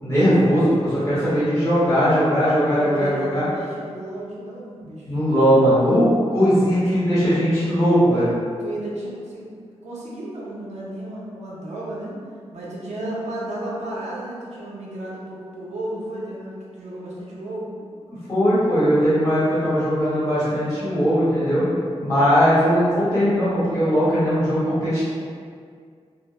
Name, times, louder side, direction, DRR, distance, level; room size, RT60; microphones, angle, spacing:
voice 1, 0.0-3.4 5.1-8.3 18.3-21.6 22.0-25.1, equal, 25° left, -13 dB, 1.2 m, -19 dB
voice 2, 2.7-5.1 8.0-8.3 8.6-12.1 12.5-17.7, right 1 dB, 90° right, -6 dB, 0.6 m, -33 dB
2.1 x 2.0 x 2.9 m, 2.1 s
wide cardioid pair, 155°, 11 cm